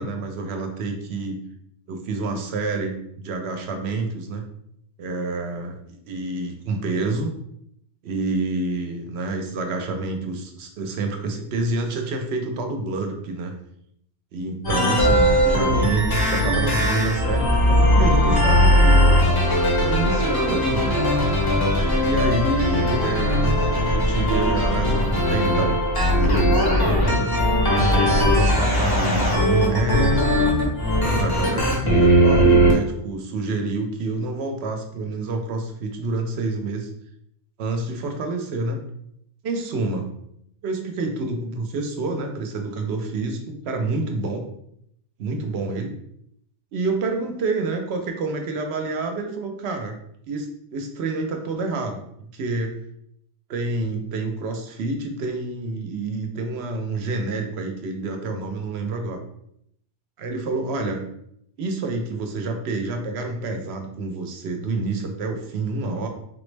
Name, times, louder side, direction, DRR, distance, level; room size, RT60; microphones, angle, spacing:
voice 1, 0.0-1.4 1.9-4.5 5.0-7.3 8.0-13.5 14.3-21.0 22.0-23.5 23.9-25.8 26.0-27.4 27.8-30.5 31.1-36.9 37.6-38.8 39.4-40.0 40.6-44.4 45.2-45.9 46.7-50.0 50.3-52.0 52.3-52.7 53.5-59.2 60.2-61.0 61.6-66.1, right 3 dB, 75° right, 4 dB, 0.8 m, -28 dB
sound 1, 14.6-32.7, equal, 25° left, 0.6 m, -19 dB
3.7 x 2.0 x 3.2 m, 0.73 s
omnidirectional pair, 1.1 m